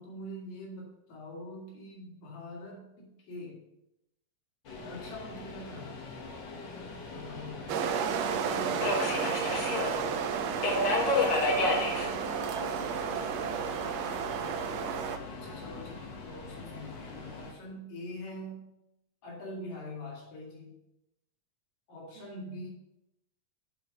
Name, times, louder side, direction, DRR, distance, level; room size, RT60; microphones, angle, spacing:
voice 1, 0.0-3.6 4.8-6.1 7.1-9.0 15.3-18.7 19.2-20.8 21.9-22.7, left 1 dB, 85° left, -2 dB, 3.7 m, -44 dB
Subway metro underground, 4.7-17.5, left 2 dB, 50° left, 1.4 m, -34 dB
sound 1, 7.7-15.2, right 7 dB, 90° right, 1.4 m, -32 dB
voice 2, 10.8-14.5 22.2-22.4, right 5 dB, 60° right, 1 dB, 2.0 m, -47 dB
7.1 x 5.1 x 6.5 m, 0.88 s
omnidirectional pair, 3.7 m